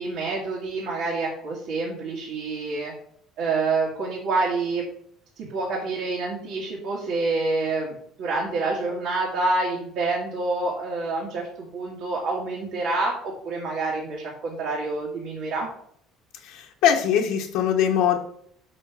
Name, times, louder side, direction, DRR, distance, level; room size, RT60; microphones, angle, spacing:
voice 1, 0.0-2.9 3.4-4.9 5.4-15.7, right 3 dB, 55° right, -5 dB, 2.4 m, -27 dB
voice 2, 16.4-18.2, left 9 dB, 65° left, 1 dB, 1.2 m, -22 dB
7.0 x 5.6 x 6.1 m, 0.63 s
cardioid pair, 170°, 0 cm